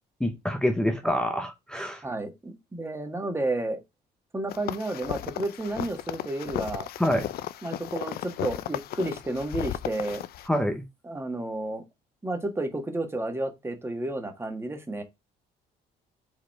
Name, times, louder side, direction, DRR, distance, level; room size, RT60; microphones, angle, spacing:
voice 1, 0.2-2.0 7.0-7.3 10.5-10.8, equal, 5° left, 0.7 m, -26 dB
voice 2, 2.0-3.8 4.3-6.9 7.6-10.2 11.0-11.8 12.2-15.0, right 2 dB, 15° right, 1.6 m, -31 dB
sound 1, 4.5-10.5, left 13 dB, 65° left, 0.5 m, -35 dB
5.1 x 4.1 x 4.6 m
cardioid pair, 110°, 17 cm